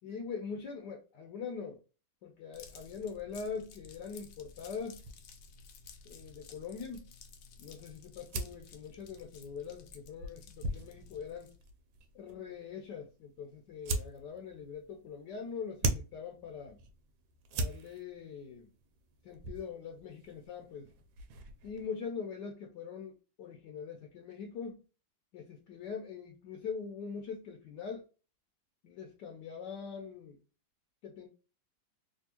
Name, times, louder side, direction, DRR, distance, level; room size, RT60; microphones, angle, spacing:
voice 1, 0.0-1.8 2.2-5.0 6.0-7.1 7.6-11.5 12.1-16.8 17.5-18.7 19.2-20.9 21.6-24.8 25.3-28.1 28.8-30.4 31.0-31.3, left 6 dB, 70° left, 1.2 m, -42 dB
sound 1, 2.5-11.7, left 5 dB, 85° left, 1.5 m, -54 dB
sound 2, 5.0-21.9, right 2 dB, 85° right, 1.5 m, -42 dB
3.4 x 2.7 x 2.8 m
omnidirectional pair, 2.1 m